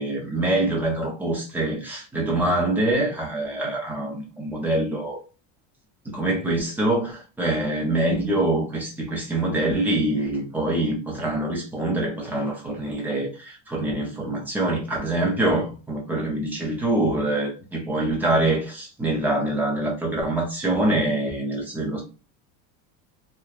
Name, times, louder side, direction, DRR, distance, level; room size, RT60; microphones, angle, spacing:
voice 1, 0.0-5.2 6.1-22.0, right 1 dB, 5° right, 0.4 m, -25 dB
2.7 x 2.1 x 2.2 m
cardioid pair, 160°, 40 cm